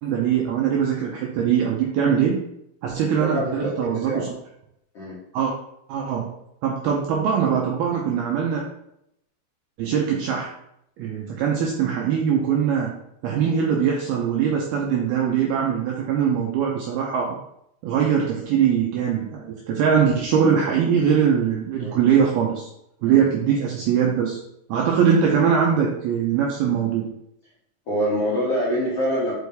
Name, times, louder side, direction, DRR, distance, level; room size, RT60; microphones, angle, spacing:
voice 1, 0.0-2.4 2.8-4.3 5.3-5.5 5.9-6.3 6.6-8.6 9.8-10.5 11.0-12.9 13.2-17.4 17.8-22.7 23.0-24.4 24.7-27.1, right 7 dB, 85° right, -1 dB, 2.2 m, -22 dB
voice 2, 3.2-3.7 4.0-4.2 4.9-5.2 21.8-22.0 23.1-23.3 27.9-29.3, equal, 65° left, -8 dB, 1.5 m, -25 dB
6.4 x 5.3 x 3.5 m, 0.78 s
omnidirectional pair, 5.3 m